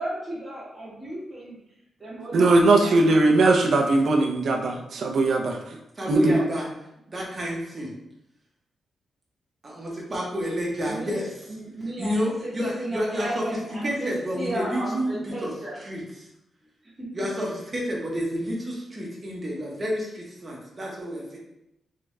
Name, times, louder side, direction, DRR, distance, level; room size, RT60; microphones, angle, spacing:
voice 1, 0.0-1.6 2.0-2.9 10.8-11.2 11.5-15.8 17.0-17.1, right 1 dB, 10° right, -9 dB, 1.3 m, -34 dB
voice 2, 2.3-5.6 6.1-6.4, right 2 dB, 60° right, 2 dB, 0.6 m, -19 dB
voice 3, 6.0-6.7 7.1-7.9 9.6-11.5 12.0-13.4 13.8-15.5 15.8-16.3 17.1-21.4, equal, 25° right, -3 dB, 1.0 m, -30 dB
3.7 x 3.4 x 3.2 m, 0.84 s
wide cardioid pair, 175°, 0 cm